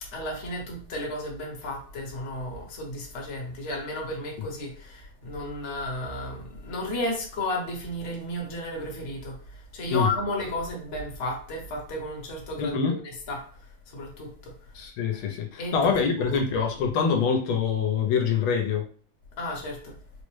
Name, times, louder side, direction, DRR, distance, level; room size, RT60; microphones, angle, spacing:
voice 1, 0.1-9.4 9.7-12.7 13.3-13.5 13.9-14.5 15.6-16.3 19.4-19.9, left 1 dB, 45° left, 0 dB, 1.1 m, -33 dB
voice 2, 12.6-13.0 14.7-18.8, left 6 dB, 80° left, 2 dB, 1.5 m, -25 dB
4.0 x 2.0 x 3.1 m, 0.42 s
omnidirectional pair, 2.2 m